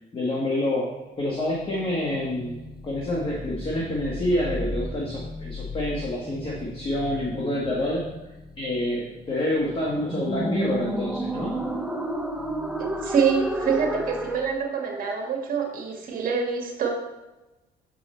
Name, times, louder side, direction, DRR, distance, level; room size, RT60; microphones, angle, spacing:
voice 1, 0.1-2.5 2.8-8.0 8.6-11.6, left 1 dB, 30° left, -2 dB, 1.3 m, -27 dB
sound 1, 1.4-14.5, right 1 dB, 5° right, 0.7 m, -33 dB
voice 2, 12.8-16.9, right 6 dB, 55° right, 0 dB, 1.5 m, -26 dB
6.7 x 5.4 x 4.2 m, 1.1 s
cardioid pair, 110°, 17 cm